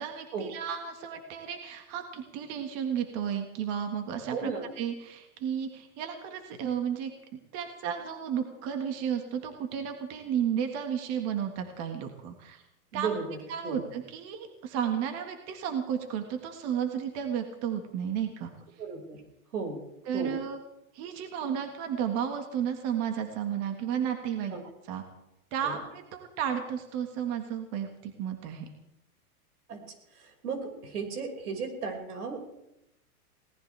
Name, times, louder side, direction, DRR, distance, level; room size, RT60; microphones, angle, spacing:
voice 1, 0.0-4.5 4.8-7.1 7.5-12.6 12.9-13.1 13.5-18.5 20.1-20.6 20.9-24.5 24.9-25.0 25.5-28.7, right 8 dB, 35° right, 5 dB, 1.8 m, -33 dB
voice 2, 4.3-4.7 12.9-13.4 13.6-13.8 18.8-19.2 19.5-19.8 20.1-20.3 24.5-24.6 25.6-25.8 29.7-29.8 30.2-32.5, right 5 dB, 90° right, 2 dB, 5.6 m, -35 dB
22.5 x 18.5 x 3.4 m, 0.86 s
supercardioid pair, 150°, 44 cm